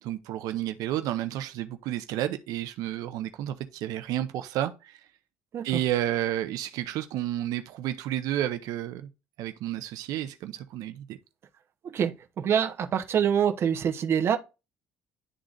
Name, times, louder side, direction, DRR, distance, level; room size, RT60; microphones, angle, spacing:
voice 1, 0.0-5.0 5.6-9.1 9.4-11.2, right 12 dB, 80° right, 0.6 m, -31 dB
voice 2, 11.8-14.4, right 8 dB, 45° right, 0.8 m, -25 dB
11.0 x 3.8 x 2.3 m
cardioid pair, 145°, 6 cm